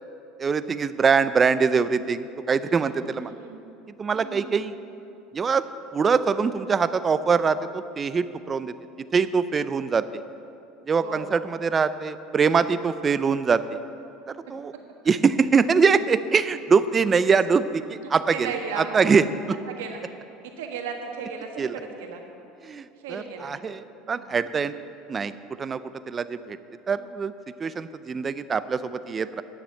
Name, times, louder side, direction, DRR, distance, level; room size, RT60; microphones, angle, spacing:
voice 1, 0.4-3.3 4.0-4.7 5.3-5.6 5.9-8.7 9.1-10.2 10.9-13.8 14.5-14.7 15.1-19.6 21.6-21.7 22.6-24.7 25.1-25.3 25.6-25.8 26.1-26.6 26.9-27.3 27.6-29.4, right 5 dB, 25° right, 13 dB, 0.5 m, -23 dB
voice 2, 2.7-3.6 4.1-4.6 11.0-11.4 18.0-19.2 19.7-20.0 20.6-22.2 23.0-23.5 24.0-24.3, right 6 dB, 90° right, 3 dB, 1.5 m, -36 dB
9.6 x 7.3 x 8.9 m, 2.7 s
supercardioid pair, 110°, 0 cm